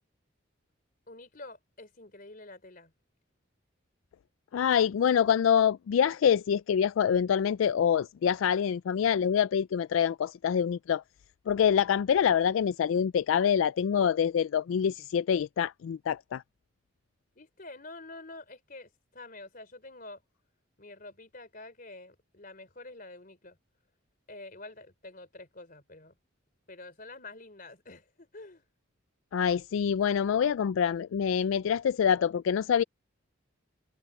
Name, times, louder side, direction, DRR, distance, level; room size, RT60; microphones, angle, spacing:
voice 1, 1.1-2.9 17.4-20.2 20.8-23.6 24.3-26.1 26.7-28.6, left 2 dB, 45° left, 3.8 m, -47 dB
voice 2, 4.5-11.0 11.5-16.4 29.3-32.8, left 8 dB, 80° left, 0.3 m, -26 dB
head